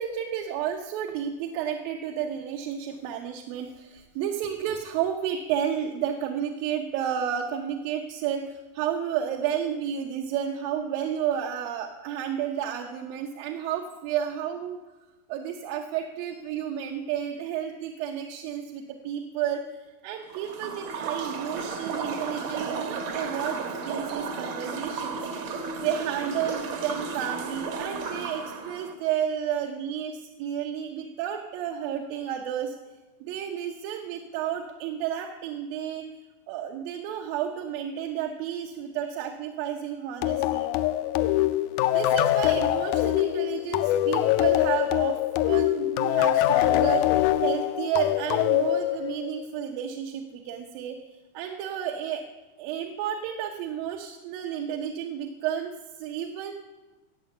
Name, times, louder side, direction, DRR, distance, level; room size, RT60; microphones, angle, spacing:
voice 1, 0.0-14.8 15.3-19.6 20.0-25.2 25.7-32.8 33.2-36.1 36.5-40.7 41.9-51.0 51.3-52.2 52.6-55.7 56.0-56.6, right 9 dB, 90° right, 2 dB, 2.7 m, -31 dB
sound 1, 20.3-28.9, right 4 dB, 70° right, 1.2 m, -34 dB
sound 2, 40.2-49.5, left 14 dB, 80° left, 1.7 m, -24 dB
15.0 x 8.0 x 8.7 m, 1.2 s
omnidirectional pair, 4.0 m